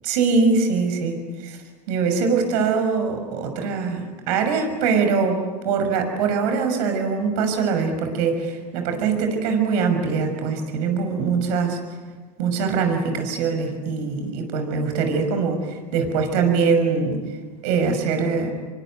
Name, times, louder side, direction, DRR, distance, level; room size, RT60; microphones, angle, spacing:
voice 1, 0.0-1.6 1.9-11.8 12.4-17.2 17.6-18.5, right 5 dB, 70° right, 6 dB, 6.2 m, -22 dB
27.0 x 23.5 x 9.3 m, 1.4 s
hypercardioid pair, 85°, 21 cm